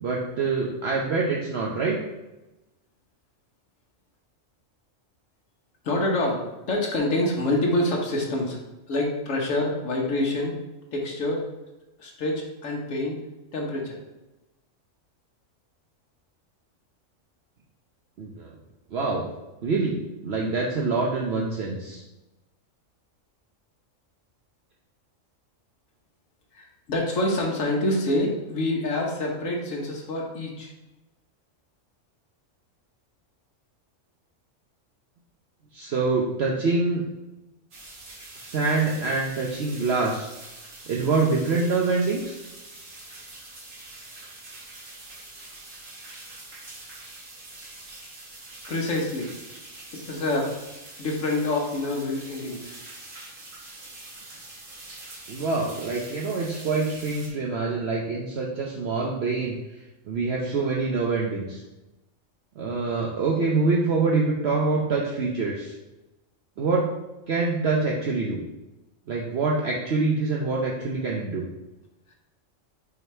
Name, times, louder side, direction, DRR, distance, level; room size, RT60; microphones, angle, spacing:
voice 1, 0.0-2.0 18.2-18.5 18.9-19.3 19.6-20.0 20.2-22.0 35.7-37.0 38.4-40.3 40.9-42.4 55.3-59.6 60.1-61.6 62.6-65.7 66.6-66.9 67.3-68.4 69.1-71.4, right 3 dB, 60° right, -2 dB, 0.9 m, -25 dB
voice 2, 5.8-8.6 8.9-10.5 10.9-11.4 12.0-13.2 13.5-14.0 26.5-30.7 48.7-49.3 49.9-50.5 51.0-52.8, left 1 dB, 75° left, -1 dB, 1.5 m, -26 dB
sound 1, 37.7-57.3, right 2 dB, 75° right, 1.8 m, -44 dB
5.6 x 4.1 x 4.3 m, 1.0 s
omnidirectional pair, 1.3 m